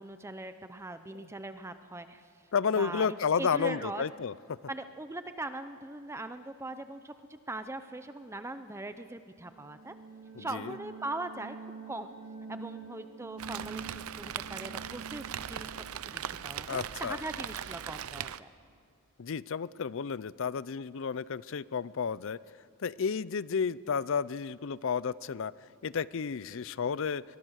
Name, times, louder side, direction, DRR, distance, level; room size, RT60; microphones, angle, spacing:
voice 1, 0.0-2.2 2.8-4.0 4.7-7.1 7.5-9.9 10.4-12.1 12.5-15.7 16.1-18.5, right 2 dB, 10° right, 10 dB, 0.6 m, -40 dB
voice 2, 2.5-4.6 10.4-10.8 16.7-17.2 19.2-22.4 22.8-25.5 25.8-27.2, left 6 dB, 60° left, 19 dB, 0.5 m, -32 dB
sound 1, 9.3-17.9, right 4 dB, 30° right, 4.0 m, -47 dB
Rain, 13.4-18.4, right 9 dB, 80° right, 0.6 m, -39 dB
24.5 x 21.0 x 6.4 m, 2.3 s
head